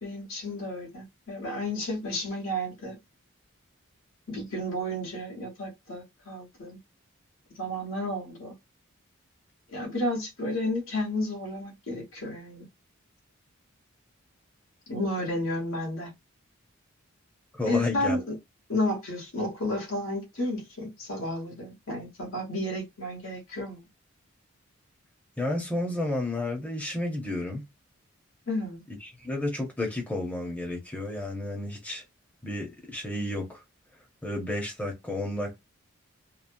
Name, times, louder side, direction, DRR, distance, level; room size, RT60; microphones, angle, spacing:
voice 1, 0.0-2.9 4.3-6.8 7.5-8.5 9.7-12.6 14.9-16.1 17.7-18.4 18.7-23.8 28.5-28.8, left 1 dB, 70° left, 1.3 m, -32 dB
voice 2, 17.5-18.2 25.4-27.6 29.0-32.0 32.4-33.6 34.2-35.6, left 2 dB, 5° left, 0.7 m, -31 dB
2.9 x 2.1 x 2.6 m
head